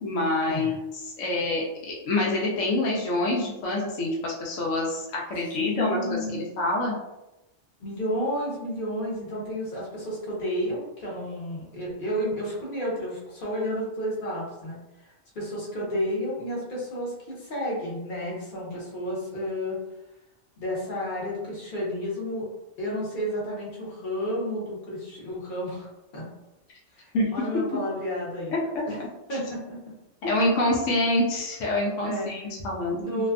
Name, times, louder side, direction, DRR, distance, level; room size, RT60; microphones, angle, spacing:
voice 1, 0.0-6.9 27.1-27.2 28.5-28.6 30.2-33.0, left 2 dB, 80° left, -3 dB, 1.0 m, -26 dB
voice 2, 5.6-6.5 7.8-19.8 20.6-22.5 22.8-25.9 26.1-26.3 26.9-28.5 28.9-29.0 29.3-29.8 32.0-32.3 33.0-33.3, equal, 45° left, -5 dB, 0.9 m, -31 dB
2.6 x 2.2 x 2.4 m, 0.95 s
omnidirectional pair, 1.3 m